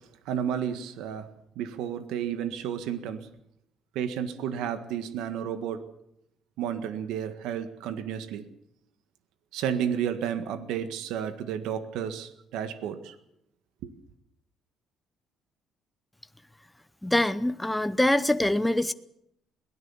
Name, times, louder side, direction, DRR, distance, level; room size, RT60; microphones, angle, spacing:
voice 1, 0.2-1.3 1.5-3.3 3.9-5.8 6.6-8.5 9.5-13.1 13.8-13.9, right 9 dB, 90° right, 10 dB, 1.7 m, -32 dB
voice 2, 17.0-18.9, left 1 dB, 5° left, 11 dB, 0.8 m, -24 dB
22.5 x 17.5 x 7.2 m, 0.76 s
cardioid pair, 135°, 0 cm